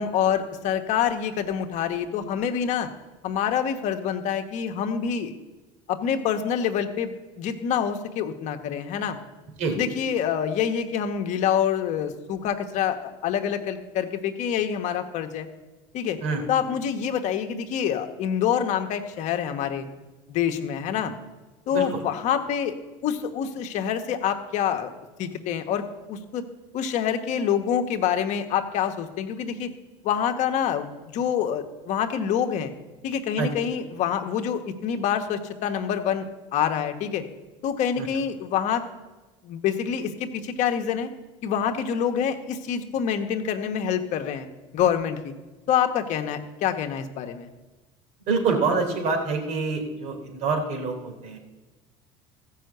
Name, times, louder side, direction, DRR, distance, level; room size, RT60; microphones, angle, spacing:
voice 1, 0.0-2.9 3.2-5.3 5.9-9.2 9.8-15.5 15.9-16.2 16.5-19.9 20.3-21.1 21.7-22.7 23.0-24.9 25.2-26.4 26.7-29.7 30.0-32.7 33.0-36.2 36.5-37.2 37.6-38.8 39.4-41.1 41.4-44.5 44.7-45.3 45.7-47.5, left 8 dB, 60° left, 6 dB, 1.3 m, -26 dB
voice 2, 21.7-22.0 33.4-33.5 38.0-38.1 48.3-51.4, right 4 dB, 60° right, 3 dB, 3.1 m, -26 dB
14.5 x 5.8 x 7.9 m, 1.2 s
supercardioid pair, 100°, 14 cm